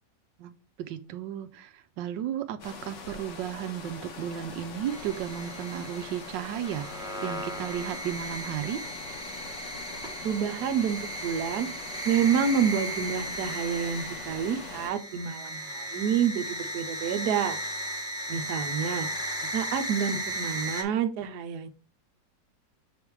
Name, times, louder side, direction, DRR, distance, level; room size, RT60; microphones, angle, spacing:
voice 1, 0.4-8.8 19.4-19.5, right 10 dB, 85° right, 10 dB, 1.3 m, -34 dB
sound 1, 2.6-14.9, left 4 dB, 90° left, 1.9 m, -43 dB
sound 2, 4.9-20.8, right 1 dB, 5° right, 1.1 m, -36 dB
voice 2, 10.2-11.7 12.1-17.6 18.3-19.1 19.5-21.7, right 7 dB, 70° right, 9 dB, 1.3 m, -28 dB
7.2 x 3.5 x 4.6 m, 0.35 s
omnidirectional pair, 1.9 m